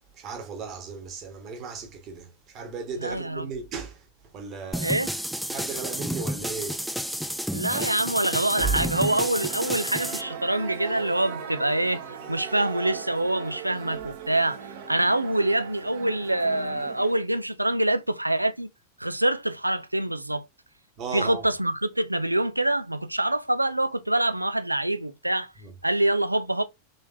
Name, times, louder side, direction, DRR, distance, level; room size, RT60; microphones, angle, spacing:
voice 1, 0.1-4.1 4.3-5.2 5.5-6.9 8.6-8.8 21.0-21.5 25.6-25.7, right 5 dB, 35° right, 1.2 m, -35 dB
voice 2, 3.0-3.5 4.8-5.1 7.5-18.7 19.0-20.5 21.1-25.5 25.8-26.6, right 1 dB, 85° right, 0.4 m, -25 dB
sound 1, 4.7-10.2, equal, ahead, 0.4 m, -31 dB
sound 2, 8.5-17.2, right 7 dB, 55° right, 0.9 m, -39 dB
3.9 x 3.3 x 2.6 m
figure-of-eight pair, 90°, 0 cm